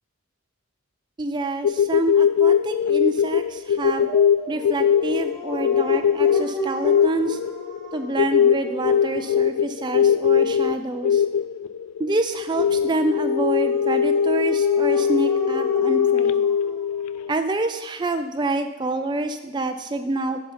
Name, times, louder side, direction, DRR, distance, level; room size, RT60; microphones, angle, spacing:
voice 1, 1.2-4.1 4.5-7.4 7.9-11.2 12.0-16.4 17.3-20.4, right 2 dB, 20° right, 7 dB, 0.3 m, -27 dB
sound 1, 1.6-17.3, left 8 dB, 90° left, 0.3 m, -21 dB
Dog, 3.8-9.6 12.8-17.4, right 1 dB, ahead, 2.3 m, -35 dB
8.1 x 5.6 x 5.6 m, 1.2 s
head